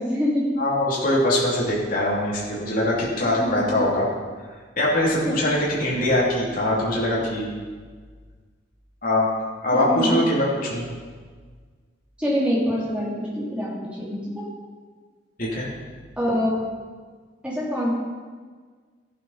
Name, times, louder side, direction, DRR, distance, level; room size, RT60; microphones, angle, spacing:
voice 1, 0.0-0.6 3.4-3.8 5.2-5.3 9.9-10.3 12.2-14.5 16.2-16.6 17.4-17.9, equal, 5° right, -7 dB, 3.4 m, -25 dB
voice 2, 0.6-4.1 4.8-7.5 9.0-9.4 9.6-10.8 15.4-15.7, left 1 dB, 45° left, -6 dB, 2.8 m, -22 dB
14.0 x 8.5 x 5.7 m, 1.5 s
head